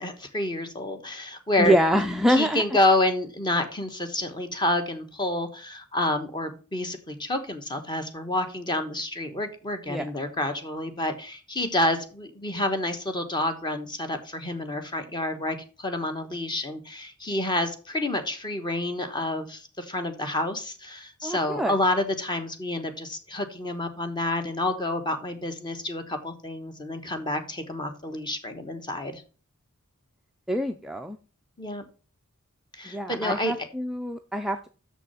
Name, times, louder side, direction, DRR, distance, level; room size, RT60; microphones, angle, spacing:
voice 1, 0.0-1.8 2.3-29.2 31.6-31.8 32.8-33.5, left 1 dB, 20° left, 7 dB, 1.2 m, -28 dB
voice 2, 1.6-2.6 9.9-10.1 21.2-21.7 30.5-31.2 32.9-34.7, equal, ahead, 4 dB, 0.4 m, -25 dB
6.7 x 6.0 x 5.6 m, 0.37 s
head